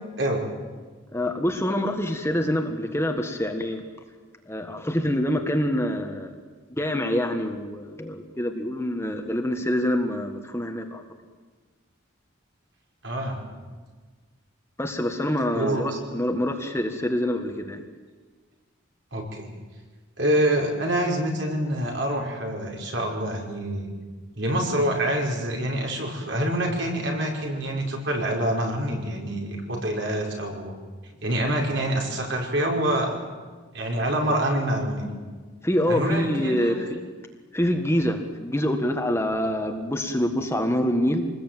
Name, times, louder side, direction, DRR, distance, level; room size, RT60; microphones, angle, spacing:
voice 1, 1.1-3.8 4.5-6.3 6.8-11.0 14.8-17.8 35.6-37.0 37.5-41.3, equal, 15° left, 4 dB, 1.7 m, -26 dB
voice 2, 13.0-13.4 15.5-16.0 19.1-19.5 20.2-23.9 24.4-30.7 31.2-33.1 33.7-35.1 35.9-36.8, right 1 dB, 60° right, 0 dB, 5.4 m, -26 dB
26.5 x 20.0 x 9.2 m, 1.4 s
head